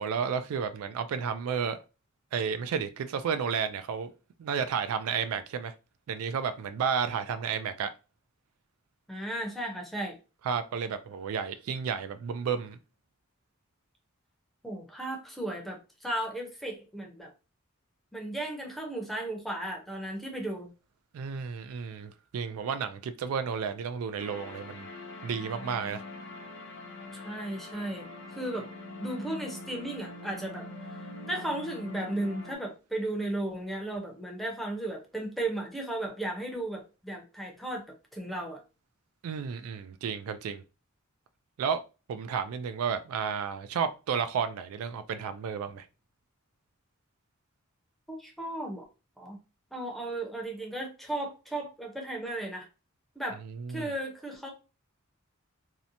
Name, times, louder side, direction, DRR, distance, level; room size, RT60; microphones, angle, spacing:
voice 1, 0.0-1.8 2.3-4.1 4.4-5.7 6.1-7.9 10.4-12.8 21.1-24.9 25.2-26.0 39.2-40.6 41.6-41.8 42.1-45.9 53.5-53.9, right 6 dB, 80° right, 0.3 m, -32 dB
voice 2, 9.1-10.2 14.6-17.3 18.1-20.7 27.1-28.1 28.3-28.7 29.0-38.6 48.1-48.8 49.2-49.4 49.7-52.7 53.2-53.4 53.7-54.5, right 1 dB, ahead, 0.6 m, -35 dB
sound 1, 24.2-32.5, left 2 dB, 60° left, 0.6 m, -43 dB
2.7 x 2.1 x 2.6 m
head